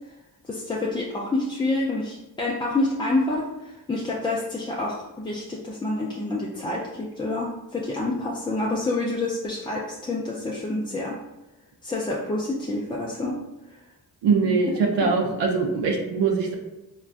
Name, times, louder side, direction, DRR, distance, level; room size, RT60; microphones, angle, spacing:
voice 1, 0.4-11.2 11.8-13.4 13.7-13.8, left 2 dB, 15° left, -4 dB, 0.3 m, -28 dB
voice 2, 14.2-16.5, right 4 dB, 80° right, 0 dB, 0.6 m, -22 dB
3.3 x 2.3 x 2.4 m, 0.98 s
cardioid pair, 55°, 42 cm